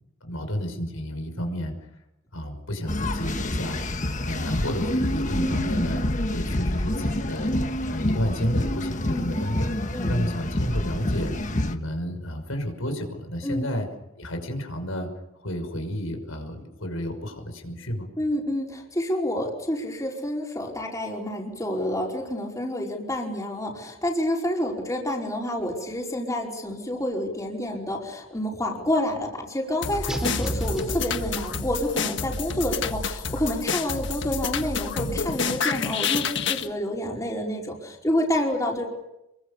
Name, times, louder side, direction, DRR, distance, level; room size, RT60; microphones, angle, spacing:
voice 1, 0.2-1.7 2.3-3.8 4.2-6.0 6.3-7.5 7.9-9.7 10.1-11.3 11.7-13.9 14.2-15.1 15.4-18.1 30.4-30.7, equal, 90° left, 6 dB, 6.0 m, -31 dB
sound 1, 2.9-11.7, left 1 dB, 40° left, 1.5 m, -27 dB
voice 2, 5.3-5.7 9.1-9.3 9.9-10.2 13.4-13.7 18.2-38.9, left 1 dB, 15° left, -1 dB, 4.8 m, -28 dB
sound 2, 29.8-36.7, left 5 dB, 60° left, 1.6 m, -29 dB
sound 3, 30.1-32.0, right 1 dB, 5° right, 4.3 m, -33 dB
28.5 x 23.0 x 7.0 m, 0.88 s
head